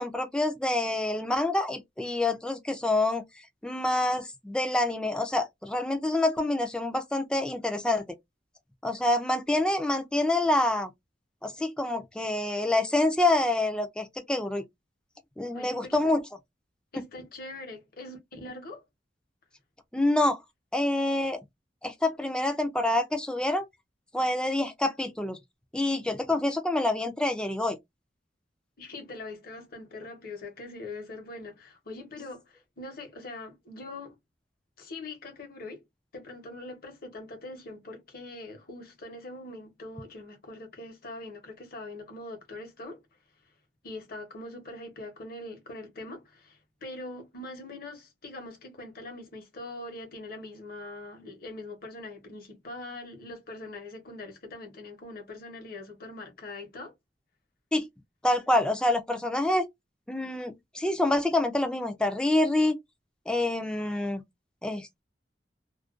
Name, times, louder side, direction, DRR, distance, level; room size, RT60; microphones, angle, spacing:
voice 1, 0.0-3.2 3.6-8.0 8.8-10.9 11.4-14.6 15.4-16.2 16.9-17.0 19.9-20.4 20.7-21.4 21.8-23.7 24.1-25.4 25.7-27.8 57.7-57.9 58.2-59.7 60.1-62.8 63.3-64.2 64.6-65.0, left 2 dB, 5° left, 0.3 m, -27 dB
voice 2, 15.5-16.0 16.9-18.8 28.8-34.2 34.8-35.8 36.1-43.0 43.8-56.9, left 2 dB, 55° left, 0.9 m, -42 dB
2.4 x 2.1 x 2.4 m
head